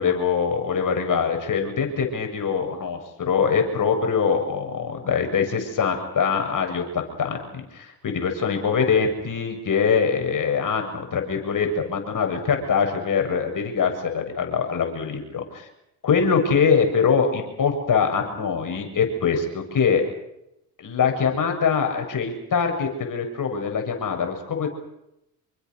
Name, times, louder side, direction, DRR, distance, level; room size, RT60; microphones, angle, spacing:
voice 1, 0.0-15.4 16.0-20.0 20.8-24.7, left 6 dB, 45° left, 4 dB, 7.6 m, -23 dB
28.0 x 24.0 x 6.7 m, 0.84 s
supercardioid pair, 70°, 43 cm